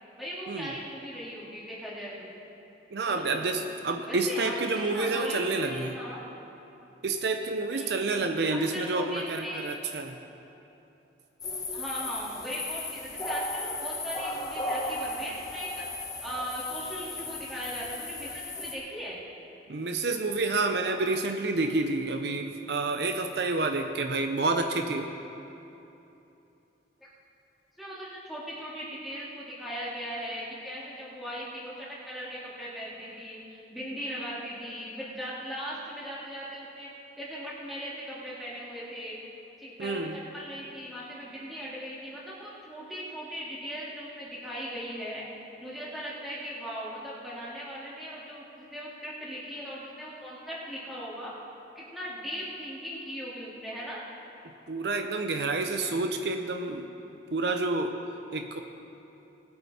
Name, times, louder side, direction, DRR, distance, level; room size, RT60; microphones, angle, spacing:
voice 1, 0.2-2.3 3.1-3.5 4.1-6.2 7.7-8.2 8.5-9.7 11.7-15.8 16.2-19.2 27.0-27.1 27.8-36.9 37.2-39.2 39.6-45.2 45.6-48.4 48.7-51.3 51.8-54.0, equal, ahead, -8 dB, 2.6 m, -38 dB
voice 2, 2.9-6.0 7.0-10.2 19.7-25.1 39.8-40.2 54.7-56.9 57.3-58.0 58.3-58.6, right 3 dB, 65° right, 5 dB, 0.6 m, -29 dB
sound 1, 11.4-18.8, left 2 dB, 20° left, 1.3 m, -35 dB
20.0 x 8.8 x 4.3 m, 2.9 s
head